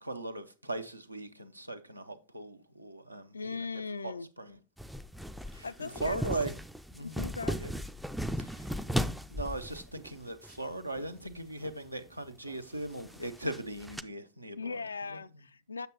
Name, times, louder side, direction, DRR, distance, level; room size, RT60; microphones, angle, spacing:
voice 1, 0.0-3.7 4.0-4.6 5.5-6.6 6.9-7.2 7.6-7.7 8.4-8.8 9.3-14.8 15.1-15.2, right 2 dB, 85° right, 0.6 m, -39 dB
voice 2, 3.3-4.3 5.6-6.2 7.0-7.6 14.6-15.9, left 4 dB, 75° left, 0.3 m, -38 dB
sound 1, 4.8-10.6 11.0-11.3 11.6-11.7 12.5-14.0, equal, ahead, 0.3 m, -36 dB
8.0 x 6.3 x 2.8 m
figure-of-eight pair, 90°, 0 cm